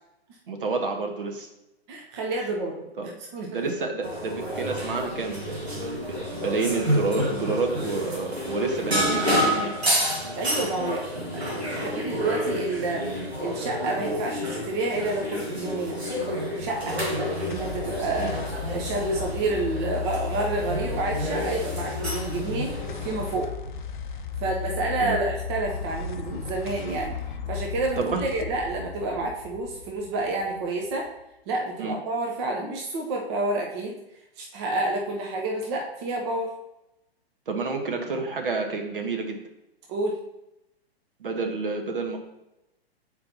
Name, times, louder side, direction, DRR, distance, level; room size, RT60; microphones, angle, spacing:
voice 1, 0.5-1.5 3.0-3.1 3.5-9.8 18.2-18.3 25.0-25.2 28.0-28.3 31.8-32.0 37.5-39.4 41.2-42.2, right 3 dB, 55° right, 3 dB, 1.1 m, -29 dB
voice 2, 1.9-2.8 3.1-3.5 10.4-11.0 11.3-16.0 16.6-17.0 17.5-18.3 18.7-22.7 23.0-23.5 24.4-27.1 27.5-31.1 31.5-34.0 34.4-36.5 39.9-40.2, right 2 dB, 25° right, 0 dB, 0.7 m, -29 dB
sound 1, 4.0-23.3, equal, 80° right, 1.5 m, -29 dB
sound 2, 16.6-31.2, left 6 dB, 50° left, 0.6 m, -35 dB
8.5 x 4.5 x 2.7 m, 0.90 s
figure-of-eight pair, 115°, 32 cm